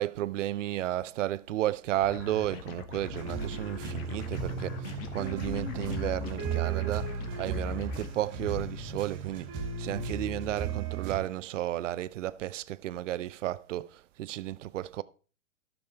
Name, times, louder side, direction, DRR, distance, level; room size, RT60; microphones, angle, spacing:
voice 1, 0.0-7.1 7.4-9.5 9.8-15.0, right 13 dB, 55° right, 0.6 m, -33 dB
sound 1, 2.0-8.1, left 7 dB, 45° left, 1.2 m, -43 dB
sound 2, 3.0-11.2, right 4 dB, 25° right, 1.8 m, -35 dB
12.5 x 6.3 x 3.3 m
hypercardioid pair, 115°, 44 cm